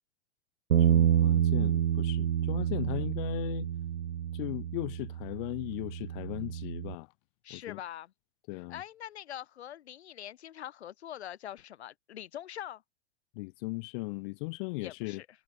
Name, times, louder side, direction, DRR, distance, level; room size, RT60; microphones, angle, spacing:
Bass guitar, 0.7-7.0, right 10 dB, 85° right, 0.7 m, -28 dB
voice 1, 0.8-3.7 4.3-7.1 7.5-7.8 8.5-8.8 13.3-15.2, left 26 dB, 50° left, 0.9 m, -37 dB
voice 2, 7.4-8.1 8.7-12.8 14.8-15.3, left 11 dB, 70° left, 1.5 m, -43 dB
hypercardioid pair, 100°, 33 cm